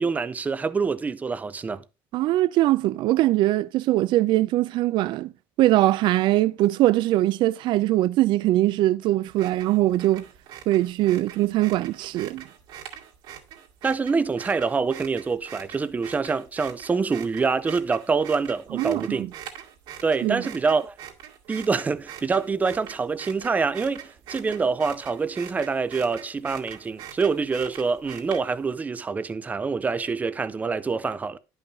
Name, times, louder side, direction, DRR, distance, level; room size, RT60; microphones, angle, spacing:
voice 1, 0.0-1.8 13.8-19.3 20.0-20.9 21.5-31.4, right 4 dB, 20° right, 0.5 m, -26 dB
voice 2, 2.1-5.3 5.6-10.2 10.7-12.4 18.7-19.3 20.2-20.4, right 15 dB, 65° right, 0.5 m, -22 dB
sound 1, 9.3-28.7, right 9 dB, 80° right, 2.2 m, -43 dB
10.5 x 5.6 x 3.7 m
cardioid pair, 150°, 9 cm